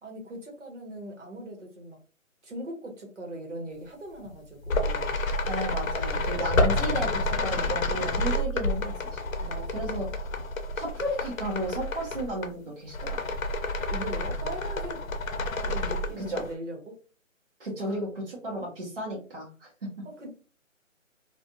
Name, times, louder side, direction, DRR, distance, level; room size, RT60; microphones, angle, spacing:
voice 1, 0.0-2.0 2.4-5.1 7.5-7.8 9.4-10.1 13.9-15.1 15.6-17.0 17.8-18.0 20.0-20.3, right 1 dB, 60° right, 2 dB, 1.1 m, -40 dB
sound 1, 4.2-4.3 4.6-12.5 12.9-16.5, left 2 dB, 80° left, 0.7 m, -29 dB
voice 2, 5.5-9.2 9.7-10.1 10.7-13.4 16.2-16.4 17.6-19.9, right 1 dB, 45° right, -4 dB, 0.8 m, -34 dB
2.4 x 2.4 x 2.7 m, 0.37 s
hypercardioid pair, 175°, 40 cm